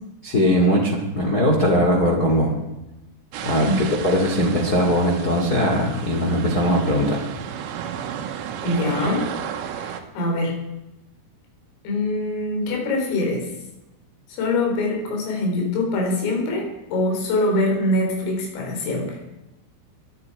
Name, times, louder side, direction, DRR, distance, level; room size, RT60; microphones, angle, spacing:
voice 1, 0.2-2.5 3.4-7.2, equal, 35° left, 0 dB, 1.6 m, -20 dB
sound 1, 3.3-10.0, right 9 dB, 80° right, 3.8 m, -33 dB
voice 2, 8.6-9.3 9.8-10.6 11.8-13.5 14.3-19.2, left 2 dB, 85° left, 0 dB, 6.5 m, -24 dB
22.5 x 12.0 x 4.8 m, 0.97 s
omnidirectional pair, 5.8 m